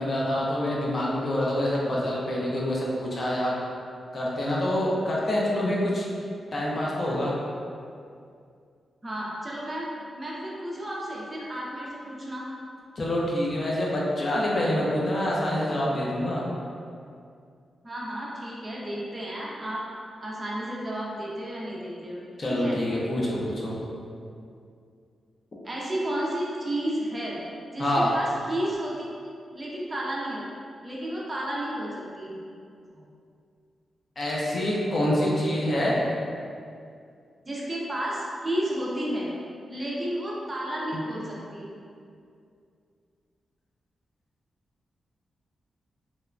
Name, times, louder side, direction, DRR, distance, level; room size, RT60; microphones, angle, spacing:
voice 1, 0.0-3.5 4.1-6.1 6.5-7.4 13.0-16.4 22.4-23.8 27.8-28.1 34.2-36.0, left 1 dB, 40° left, -5 dB, 0.5 m, -26 dB
voice 2, 9.0-9.9 10.1-12.5 17.8-19.8 20.2-22.8 25.6-27.4 27.7-29.1 29.5-30.5 30.8-32.4 32.9-33.0 37.5-39.3 39.7-41.7, right 1 dB, 20° right, -5 dB, 0.3 m, -32 dB
2.9 x 2.1 x 2.4 m, 2.4 s
wide cardioid pair, 135°, 0 cm